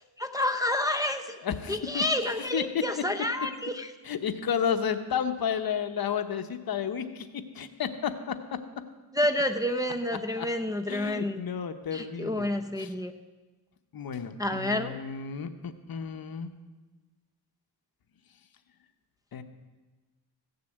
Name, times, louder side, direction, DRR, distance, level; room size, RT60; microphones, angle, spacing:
voice 1, 0.2-1.4 1.7-3.9 9.1-11.4 11.9-13.1 14.4-14.9, left 1 dB, 10° right, 3 dB, 0.5 m, -29 dB
voice 2, 1.4-2.0 2.5-2.6 4.0-7.3 7.5-8.3 10.4-10.5 10.9-12.5 12.8-12.9 13.9-16.5 19.3-19.4, left 7 dB, 60° left, 8 dB, 1.0 m, -32 dB
15.5 x 6.8 x 7.9 m, 1.2 s
wide cardioid pair, 125°, 41 cm